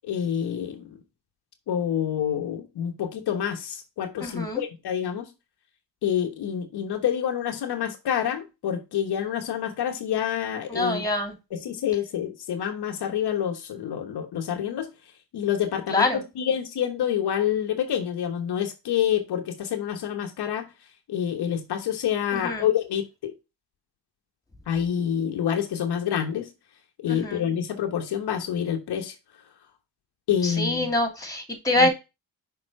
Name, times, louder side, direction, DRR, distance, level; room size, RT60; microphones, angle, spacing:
voice 1, 0.0-1.0 1.7-5.3 6.0-11.0 11.5-14.9 15.3-20.7 21.1-23.3 24.7-26.5 27.0-29.1 30.3-30.9 31.8-31.9, left 9 dB, 70° left, 1.1 m, -27 dB
voice 2, 4.2-4.6 10.7-11.3 15.9-16.2 22.3-22.7 27.1-27.4 30.4-31.9, left 2 dB, 10° left, 2.5 m, -25 dB
6.0 x 3.7 x 4.4 m
cardioid pair, 70°, 41 cm